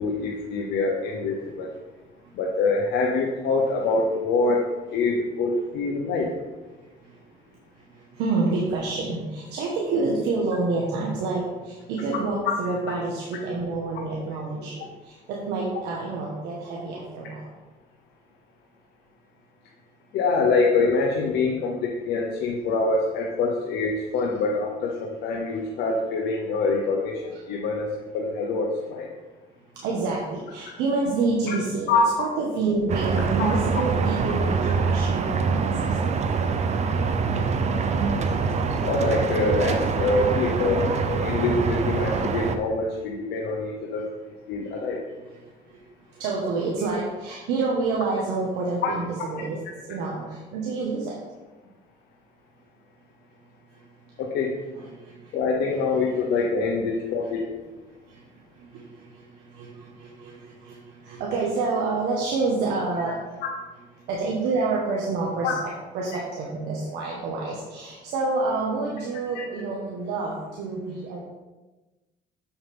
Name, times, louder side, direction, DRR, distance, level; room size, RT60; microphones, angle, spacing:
voice 1, 0.0-1.7 2.3-4.6 4.9-6.3 20.1-27.9 28.1-29.1 31.5-31.6 31.9-32.0 33.4-33.5 38.8-44.1 44.5-45.0 48.8-48.9 54.2-54.5 55.3-57.4 63.0-63.1 65.4-65.5, left 3 dB, 80° left, -1 dB, 1.0 m, -25 dB
voice 2, 8.1-17.4 29.8-31.9 32.2-35.9 45.3-45.4 46.1-49.6 49.9-51.2 54.8-55.1 58.1-58.2 58.6-59.2 59.5-63.1 64.1-65.6 65.9-71.2, right 3 dB, 85° right, -3 dB, 1.4 m, -28 dB
sound 1, 32.9-42.6, right 5 dB, 40° right, 0.6 m, -24 dB
7.2 x 7.1 x 3.6 m, 1.1 s
cardioid pair, 110°, 17 cm